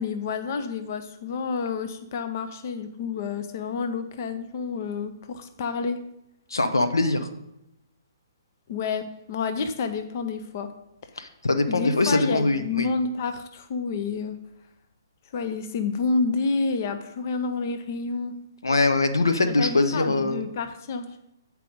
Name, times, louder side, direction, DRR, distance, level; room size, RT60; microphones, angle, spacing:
voice 1, 0.0-6.0 8.7-10.7 11.0-11.1 11.7-14.4 15.3-18.3 19.6-21.1, left 4 dB, 45° left, 8 dB, 0.6 m, -29 dB
voice 2, 6.5-7.3 11.2-12.9 18.6-20.4, left 2 dB, 80° left, 9 dB, 0.7 m, -22 dB
8.4 x 4.7 x 5.1 m, 0.83 s
figure-of-eight pair, 130°, 2 cm